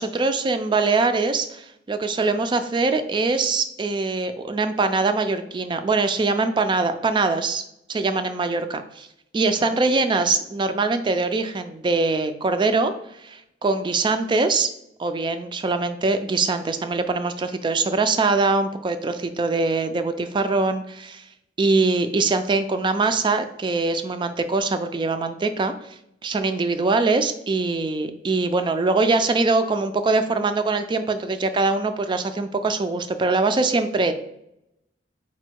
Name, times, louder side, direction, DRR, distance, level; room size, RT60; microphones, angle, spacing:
voice 1, 0.0-7.6 7.9-9.1 9.3-12.9 13.2-14.7 15.0-21.2 21.6-25.7 26.2-34.1, right 3 dB, 25° right, 9 dB, 0.3 m, -23 dB
4.2 x 2.2 x 4.5 m, 0.79 s
head